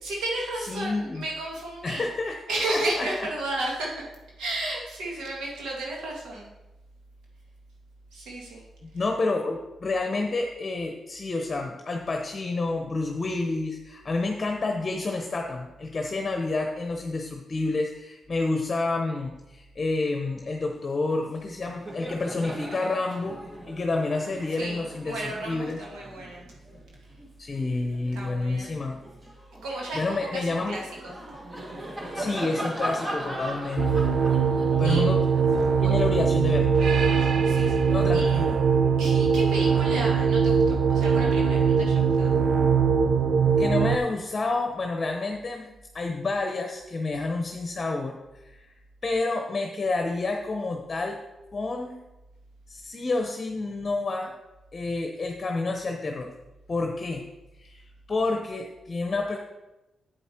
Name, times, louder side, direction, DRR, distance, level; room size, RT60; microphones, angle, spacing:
voice 1, 0.0-2.1 2.5-4.1 4.4-6.5 8.1-8.6 24.6-26.5 28.2-28.8 29.6-31.2 34.8-35.0 35.8-36.1 37.2-38.7 39.0-42.4, right 2 dB, 90° right, -2 dB, 2.2 m, -33 dB
voice 2, 0.7-1.2 1.8-2.4 2.7-3.1 8.8-23.4 23.7-25.8 27.4-29.0 29.9-30.8 32.1-34.0 34.8-35.2 35.8-36.8 37.9-38.5 43.6-48.2 48.4-48.7 49.0-51.2 51.5-52.0 52.7-54.3 54.7-56.3 56.7-57.2 57.5-57.8 58.1-59.4, left 3 dB, 40° left, 3 dB, 0.9 m, -29 dB
Laughter, 21.1-21.3 21.6-28.3 28.8-37.0, right 1 dB, 30° right, 1.8 m, -39 dB
sound 1, 33.8-44.0, right 6 dB, 65° right, 0.7 m, -21 dB
8.1 x 7.9 x 4.5 m, 1.0 s
cardioid pair, 70°, 0 cm